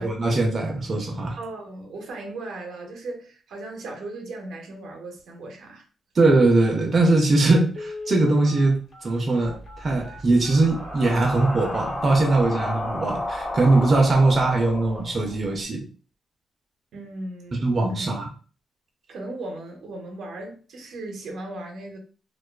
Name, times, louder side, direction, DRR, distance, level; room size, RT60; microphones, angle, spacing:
voice 1, 0.0-1.4 6.2-15.8 17.6-18.3, right 2 dB, 40° right, 2 dB, 0.5 m, -21 dB
voice 2, 1.4-5.9 16.9-17.7 18.0-18.2 19.1-22.0, right 2 dB, 80° right, 2 dB, 0.6 m, -37 dB
Telephone, 7.7-12.6 13.1-13.2 13.5-13.7 14.1-14.4 14.7-14.8, left 2 dB, 70° left, 1.0 m, -40 dB
sound 1, 9.5-15.6, left 1 dB, 30° left, 1.0 m, -33 dB
2.4 x 2.3 x 2.2 m, 0.38 s
cardioid pair, 80°, 0 cm